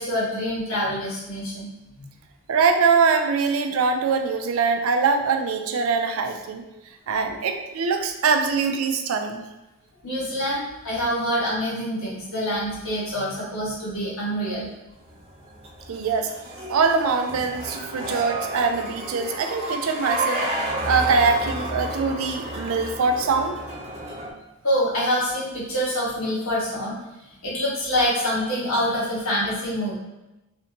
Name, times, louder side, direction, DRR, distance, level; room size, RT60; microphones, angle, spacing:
voice 1, 0.0-1.7 2.0-2.1 10.0-14.7 24.6-27.0 27.4-29.9, equal, 75° left, -7 dB, 1.4 m, -26 dB
voice 2, 2.5-6.6 7.1-9.4 15.9-16.3 16.7-20.4 20.8-23.6, right 5 dB, 80° right, 5 dB, 0.4 m, -23 dB
sound 1, 15.0-24.3, right 1 dB, 30° right, 0.7 m, -31 dB
3.3 x 2.6 x 2.9 m, 1.0 s
head